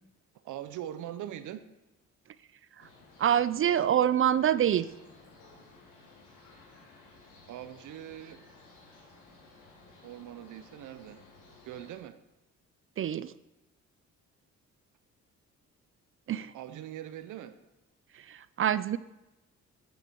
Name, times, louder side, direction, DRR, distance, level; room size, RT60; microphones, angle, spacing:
voice 1, 0.4-1.7 7.5-8.4 10.0-11.2 11.6-12.2 16.5-17.6, right 11 dB, 80° right, 12 dB, 0.8 m, -42 dB
sound 1, 2.8-12.0, left 3 dB, 85° left, 4.3 m, -56 dB
voice 2, 3.2-4.9 13.0-13.3 16.3-16.5 18.3-19.0, right 10 dB, 45° right, 16 dB, 0.4 m, -26 dB
12.0 x 9.3 x 4.5 m, 1.0 s
cardioid pair, 90°, 30 cm